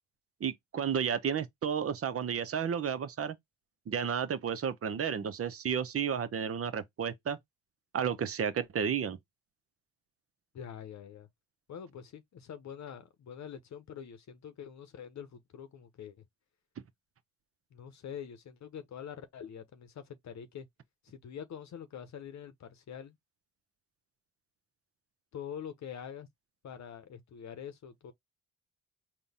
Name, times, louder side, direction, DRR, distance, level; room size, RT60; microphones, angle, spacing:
voice 1, 0.4-3.4 3.9-7.4 7.9-9.2, right 7 dB, 45° right, 0.8 m, -32 dB
voice 2, 10.5-11.3 11.7-16.2 17.7-20.7 21.0-23.2 25.3-26.3 26.6-28.1, left 8 dB, 60° left, 0.8 m, -45 dB
3.9 x 2.4 x 3.5 m
supercardioid pair, 55°, 32 cm